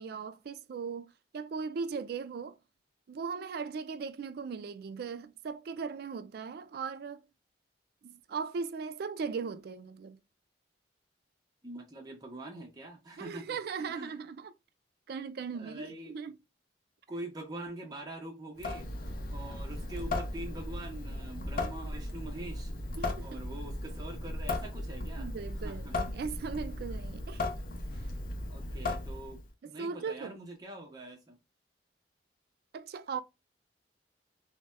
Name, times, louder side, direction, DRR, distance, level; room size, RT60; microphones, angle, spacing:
voice 1, 0.0-2.6 3.1-7.2 8.0-10.2 13.2-14.5 15.1-16.4 23.0-23.4 25.2-27.6 29.6-30.4 32.7-33.2, right 5 dB, 55° right, 0.3 m, -38 dB
voice 2, 11.6-13.6 13.9-14.2 15.5-16.1 17.1-18.9 19.3-22.7 23.2-25.3 25.6-25.9 28.5-31.4, right 1 dB, 20° right, 0.7 m, -44 dB
Water tap faucet / Sink (filling or washing) / Drip, 18.6-29.5, left 2 dB, 50° left, 0.6 m, -37 dB
4.0 x 2.1 x 2.2 m
head